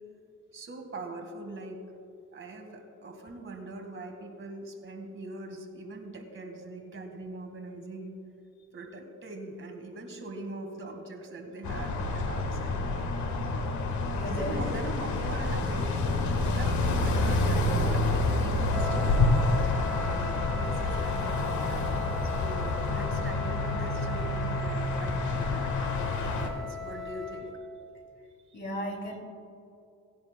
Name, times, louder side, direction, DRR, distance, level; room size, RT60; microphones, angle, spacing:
voice 1, 0.5-1.8 2.3-8.2 8.7-13.0 14.2-16.0 16.5-19.0 20.0-21.5 22.3-27.5, right 2 dB, 45° right, 4 dB, 1.8 m, -41 dB
sound 1, 11.6-26.5, left 2 dB, 75° left, 1.4 m, -28 dB
voice 2, 14.1-14.6 28.5-29.2, equal, 35° left, 2 dB, 2.3 m, -35 dB
Wind instrument woodwind instrument, 18.7-27.6, left 6 dB, ahead, 1.1 m, -39 dB
18.5 x 10.5 x 2.2 m, 2.6 s
cardioid pair, 90°, 30 cm